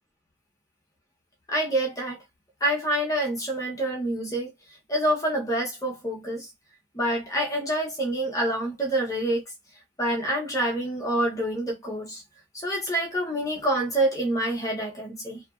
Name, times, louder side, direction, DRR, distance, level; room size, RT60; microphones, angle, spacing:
voice 1, 1.5-2.2 2.6-4.5 4.9-6.5 6.9-9.4 10.0-12.2 12.5-15.4, right 1 dB, 15° left, 0.6 m, -27 dB
2.7 x 2.5 x 2.3 m
head